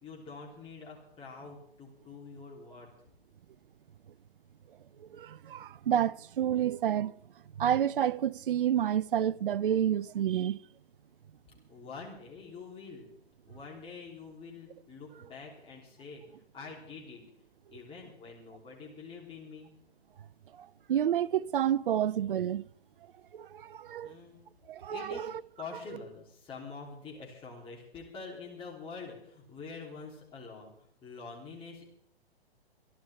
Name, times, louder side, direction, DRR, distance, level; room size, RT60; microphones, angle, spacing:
voice 1, 0.0-2.9 11.7-13.1 13.5-16.2 16.5-17.2 17.7-19.7 24.0-24.4 24.9-25.3 25.6-30.7 31.0-31.9, left 4 dB, 15° left, 3.1 m, -46 dB
voice 2, 5.0-7.1 7.6-10.6 20.6-22.7 23.3-24.1 24.7-25.3, right 10 dB, 55° right, 0.5 m, -29 dB
26.5 x 11.5 x 3.4 m
figure-of-eight pair, 120°, 32 cm